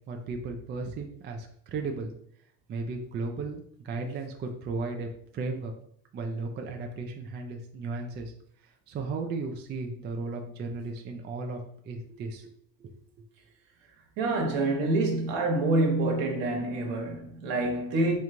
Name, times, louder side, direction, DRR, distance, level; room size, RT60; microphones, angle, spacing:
voice 1, 0.1-2.1 2.7-5.7 6.1-8.3 8.9-11.6 11.8-12.5 12.8-12.9, right 3 dB, 25° right, 0.3 m, -35 dB
voice 2, 14.2-18.2, right 2 dB, 65° right, 1.3 m, -26 dB
3.2 x 3.1 x 3.7 m
cardioid pair, 120°, 47 cm